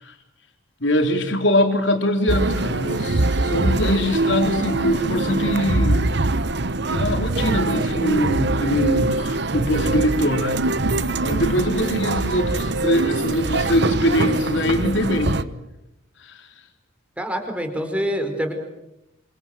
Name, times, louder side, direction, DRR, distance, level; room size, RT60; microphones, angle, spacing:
voice 1, 0.8-6.2 6.9-10.9 11.2-15.4 16.2-16.5, left 1 dB, 60° left, 4.2 m, -23 dB
sound 1, 2.3-15.4, right 2 dB, 55° right, 1.1 m, -23 dB
voice 2, 17.2-18.5, equal, 5° right, 4.7 m, -25 dB
27.5 x 26.5 x 7.7 m
head